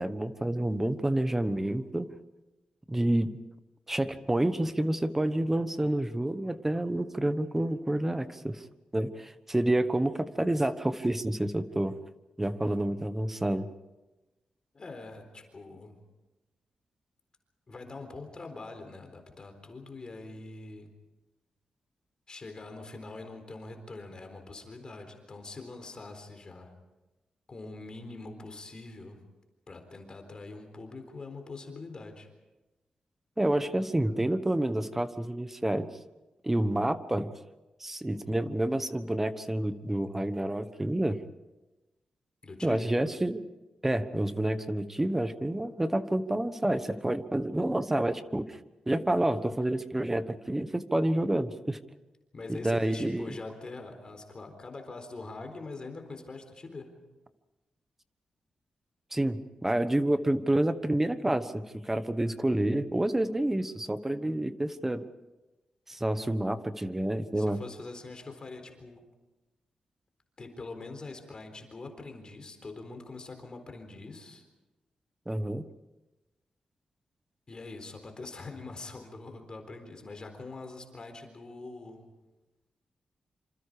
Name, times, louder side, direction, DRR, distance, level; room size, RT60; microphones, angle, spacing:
voice 1, 0.0-2.1 2.9-3.4 3.9-8.6 8.9-11.9 12.4-13.7 33.4-35.9 36.4-37.3 37.8-41.2 42.6-43.4 43.8-48.6 48.9-51.8 52.5-53.3 59.1-65.0 65.9-67.6 75.3-75.6, right 1 dB, 15° right, 12 dB, 1.2 m, -29 dB
voice 2, 14.7-16.0 17.7-20.9 22.3-26.7 27.5-29.2 29.7-32.3 42.4-43.0 52.3-56.9 67.3-69.0 70.4-74.5 77.5-82.1, left 3 dB, 35° left, 6 dB, 4.0 m, -43 dB
27.0 x 26.5 x 5.0 m, 1.1 s
wide cardioid pair, 110°, 2 cm